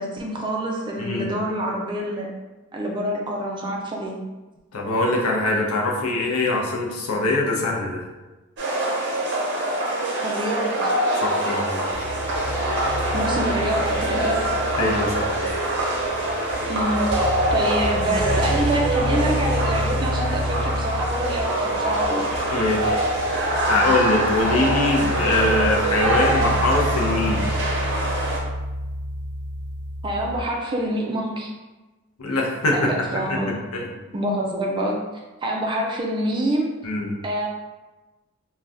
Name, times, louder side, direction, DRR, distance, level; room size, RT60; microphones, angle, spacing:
voice 1, 0.0-2.3 2.7-4.2 10.2-10.9 13.1-14.4 16.7-22.3 30.0-31.5 32.7-33.6 34.1-35.0 35.4-36.8 37.2-37.5, right 1 dB, 20° right, -1 dB, 0.4 m, -26 dB
voice 2, 4.7-8.0 11.2-11.8 14.7-15.4 22.5-22.9 23.3-27.5 32.2-33.4 33.7-33.9 36.8-37.1, left 2 dB, 85° left, 0 dB, 0.6 m, -23 dB
sound 1, 8.6-28.4, right 1 dB, 55° right, 0.7 m, -24 dB
sound 2, 11.9-30.3, equal, 40° left, 0.6 m, -29 dB
2.6 x 2.2 x 3.4 m, 1.1 s
head